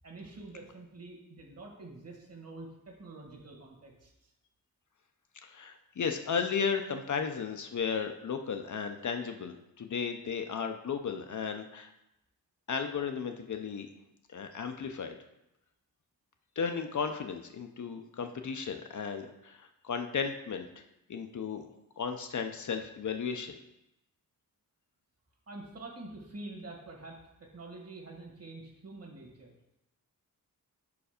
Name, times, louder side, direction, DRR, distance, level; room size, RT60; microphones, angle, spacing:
voice 1, 0.0-4.3 25.5-29.5, right 2 dB, 40° right, 0 dB, 1.4 m, -47 dB
voice 2, 5.4-11.9 12.7-13.9 14.3-15.2 16.6-20.7 21.1-21.6 22.0-23.6, left 6 dB, 55° left, 6 dB, 0.5 m, -34 dB
5.1 x 4.7 x 5.0 m, 0.87 s
wide cardioid pair, 150°, 36 cm